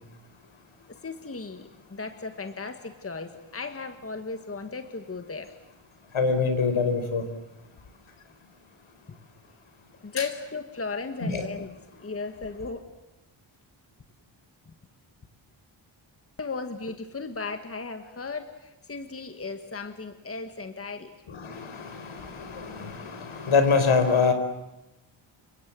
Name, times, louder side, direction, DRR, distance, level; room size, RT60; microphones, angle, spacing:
voice 1, 1.0-5.5 9.1-9.2 10.0-11.7 12.0-12.9 16.4-21.1, left 4 dB, 30° left, 8 dB, 1.7 m, -36 dB
voice 2, 6.1-7.3 10.2-10.3 11.2-11.5 21.3-24.3, left 5 dB, 75° left, 8 dB, 4.9 m, -25 dB
29.5 x 25.0 x 7.6 m, 0.95 s
wide cardioid pair, 130°, 49 cm